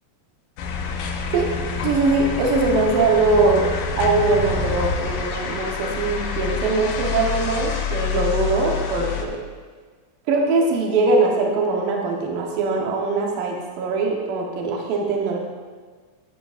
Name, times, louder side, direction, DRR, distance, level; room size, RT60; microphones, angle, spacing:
sound 1, 0.6-9.3, left 6 dB, 80° left, 2.6 m, -27 dB
voice 1, 1.8-3.7 4.0-9.3 10.3-15.4, right 3 dB, 75° right, 0 dB, 2.7 m, -21 dB
14.0 x 8.7 x 2.5 m, 1.5 s
omnidirectional pair, 4.0 m